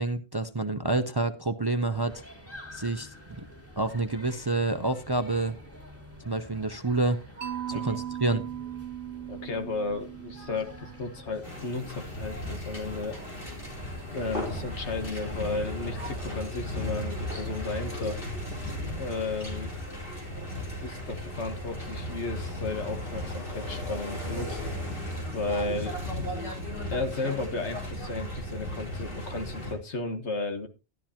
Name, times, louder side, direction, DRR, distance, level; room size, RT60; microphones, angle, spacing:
voice 1, 0.0-2.2 2.7-3.4 3.8-5.6 6.2-7.2 7.7-8.5, right 2 dB, 25° right, 9 dB, 0.6 m, -28 dB
sound 1, 1.9-16.2, equal, 10° left, 2.4 m, -48 dB
Mallet percussion, 7.4-11.4, right 11 dB, 60° right, 0.9 m, -38 dB
voice 2, 9.3-13.2 14.1-18.2 19.0-19.7 20.8-24.6 25.3-26.0 26.9-30.7, left 3 dB, 75° left, 7 dB, 1.8 m, -34 dB
sound 2, 11.4-29.7, left 1 dB, 50° left, 4.1 m, -35 dB
12.5 x 12.0 x 2.8 m, 0.28 s
omnidirectional pair, 1.2 m